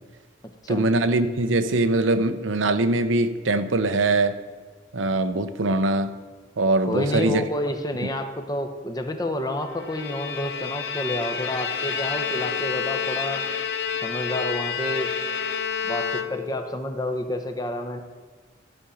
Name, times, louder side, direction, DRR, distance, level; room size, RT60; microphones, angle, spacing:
voice 1, 0.7-4.4 4.9-6.1 6.6-7.4, right 2 dB, 90° right, 0.7 m, -22 dB
voice 2, 6.8-13.4 14.0-15.1 15.8-18.0, left 1 dB, 20° left, 0.8 m, -29 dB
Bowed string instrument, 9.7-16.7, left 7 dB, 60° left, 0.7 m, -29 dB
14.0 x 5.2 x 7.0 m
head